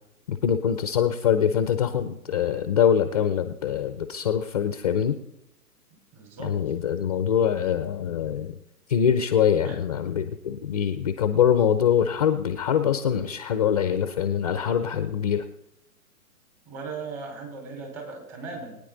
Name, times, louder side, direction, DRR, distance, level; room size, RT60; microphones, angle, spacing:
voice 1, 0.3-5.2 6.4-8.5 8.9-15.4, left 8 dB, 25° left, 9 dB, 0.5 m, -24 dB
voice 2, 6.1-6.5 9.6-9.8 16.6-18.8, right 4 dB, 25° right, 2 dB, 4.6 m, -37 dB
21.5 x 9.7 x 3.9 m, 0.86 s
hypercardioid pair, 140°, 47 cm